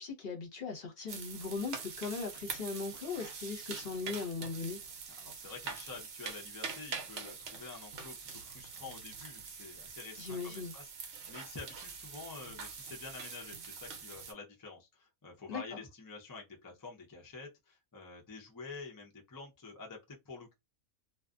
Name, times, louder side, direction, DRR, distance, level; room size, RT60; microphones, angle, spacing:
voice 1, 0.0-4.8 10.2-10.7 15.5-15.6, left 4 dB, 50° left, 1.0 m, -39 dB
Frying an omlette, 1.1-14.3, right 5 dB, 60° right, 1.0 m, -45 dB
voice 2, 5.1-20.5, left 4 dB, 25° left, 0.4 m, -48 dB
2.4 x 2.4 x 2.3 m
omnidirectional pair, 1.4 m